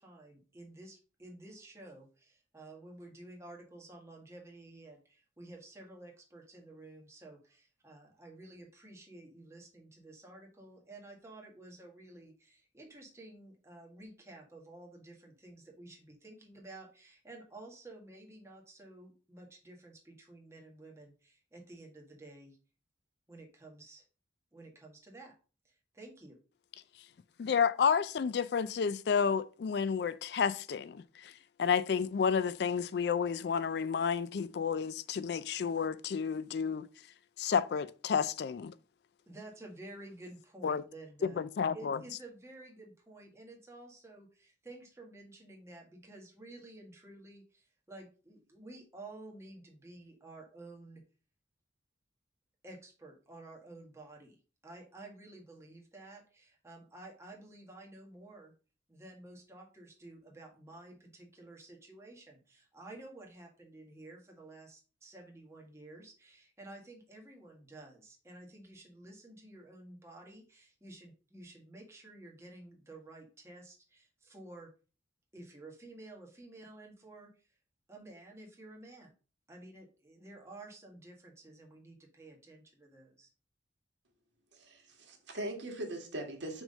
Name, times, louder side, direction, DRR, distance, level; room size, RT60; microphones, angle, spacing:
voice 1, 0.0-22.6 23.3-24.0 24.5-25.3 25.6-26.4 39.3-51.0 52.6-58.5 58.9-74.7 75.3-77.6 77.9-79.1 79.5-83.3, right 2 dB, 15° right, 1.6 m, -52 dB
voice 2, 27.4-31.3 31.6-36.9 37.4-38.7 40.6-40.8 41.2-42.0, left 6 dB, 60° left, 0.3 m, -31 dB
voice 3, 84.5-86.6, right 1 dB, 75° right, 1.8 m, -40 dB
6.1 x 3.6 x 5.4 m
head